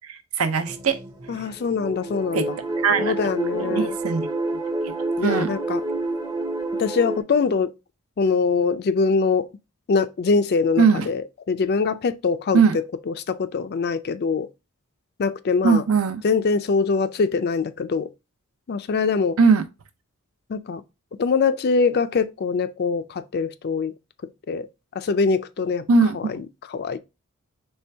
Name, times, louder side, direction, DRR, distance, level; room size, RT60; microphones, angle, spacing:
voice 1, 0.1-1.0 2.3-2.5 2.8-3.1 3.6-4.3 5.2-5.5 10.8-11.1 12.5-12.8 15.6-16.2 19.4-19.6 25.9-26.2, right 5 dB, 70° right, 0.6 m, -19 dB
sound 1, 0.7-7.2, right 2 dB, 15° right, 0.6 m, -28 dB
voice 2, 1.3-2.6 3.0-4.0 5.2-5.8 6.8-7.7 8.2-9.5 9.9-11.2 11.5-14.5 15.2-15.8 16.2-18.1 18.7-19.4 20.5-20.8 21.2-23.9 24.5-24.7 25.0-25.9 26.1-26.2 26.7-27.0, left 4 dB, 45° left, 0.4 m, -23 dB
4.4 x 3.4 x 3.3 m
head